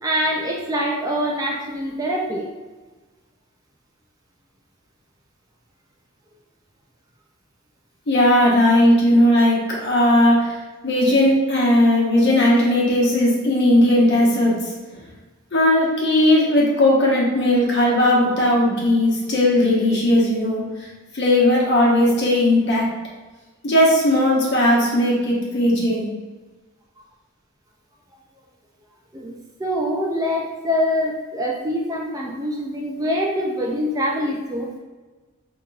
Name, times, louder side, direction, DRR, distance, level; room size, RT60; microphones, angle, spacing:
voice 1, 0.0-2.5 12.2-12.3 29.1-34.8, equal, 15° right, -2 dB, 0.4 m, -24 dB
voice 2, 8.1-10.5 10.8-14.6 15.5-20.6 21.1-22.9 23.6-26.1, left 1 dB, 55° left, -4 dB, 1.1 m, -17 dB
5.3 x 2.9 x 2.3 m, 1.3 s
head